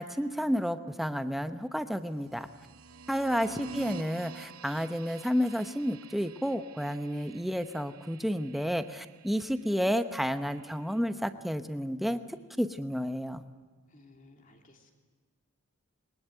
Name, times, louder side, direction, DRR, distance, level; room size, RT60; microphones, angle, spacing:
voice 1, 0.0-2.5 3.1-13.4, equal, ahead, 9 dB, 0.9 m, -31 dB
sound 1, 2.2-11.0, right 5 dB, 70° right, 0.9 m, -49 dB
voice 2, 3.1-4.0 13.9-14.9, left 2 dB, 35° left, 3 dB, 3.1 m, -58 dB
22.5 x 19.5 x 9.2 m, 1.4 s
head